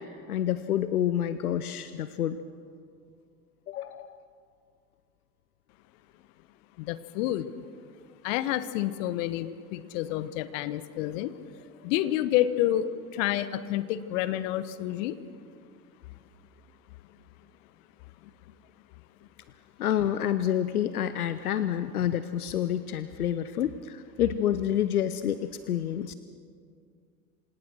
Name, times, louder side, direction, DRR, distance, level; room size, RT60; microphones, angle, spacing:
voice 1, 0.0-2.4 3.7-4.2 19.8-26.1, left 10 dB, 80° left, 13 dB, 0.8 m, -28 dB
voice 2, 6.8-7.5 8.2-11.3 11.8-12.8 13.1-15.1, left 13 dB, 55° left, 15 dB, 1.2 m, -29 dB
26.5 x 18.0 x 6.2 m, 2.2 s
figure-of-eight pair, 80°, 44 cm